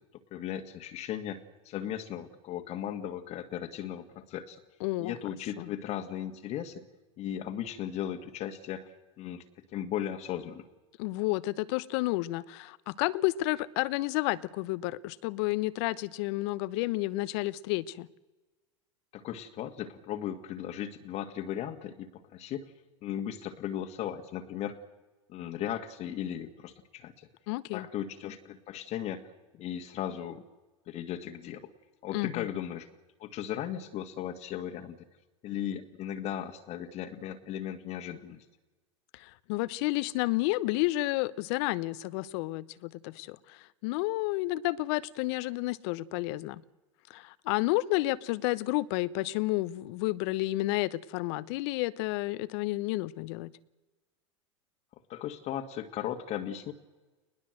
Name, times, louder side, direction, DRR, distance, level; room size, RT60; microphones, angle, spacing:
voice 1, 0.3-4.6 5.0-6.8 7.2-8.9 9.2-9.4 9.7-10.6 19.1-22.7 23.0-24.8 25.3-27.3 27.7-30.4 30.9-31.7 32.0-32.9 33.2-35.0 35.4-38.5 55.1-56.7, left 10 dB, 45° left, 6 dB, 1.8 m, -37 dB
voice 2, 4.8-5.2 5.6-5.7 11.0-18.1 27.5-27.9 32.1-32.5 39.1-46.6 47.1-53.5, left 19 dB, 60° left, 18 dB, 0.9 m, -31 dB
20.5 x 20.0 x 7.8 m, 1.2 s
hypercardioid pair, 105°, 16 cm